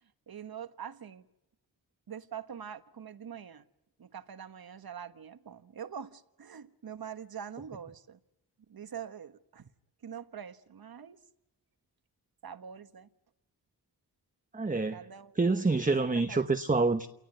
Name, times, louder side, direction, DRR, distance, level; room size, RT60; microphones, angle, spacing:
voice 1, 0.3-1.3 2.1-3.7 4.0-8.2 8.7-9.7 10.0-11.2 12.4-13.1 14.9-15.7 16.0-16.5, right 8 dB, 60° right, 1.4 m, -44 dB
voice 2, 14.5-15.0 15.4-17.1, right 3 dB, 20° right, 1.0 m, -27 dB
28.5 x 18.5 x 9.4 m
cardioid pair, 75°, 41 cm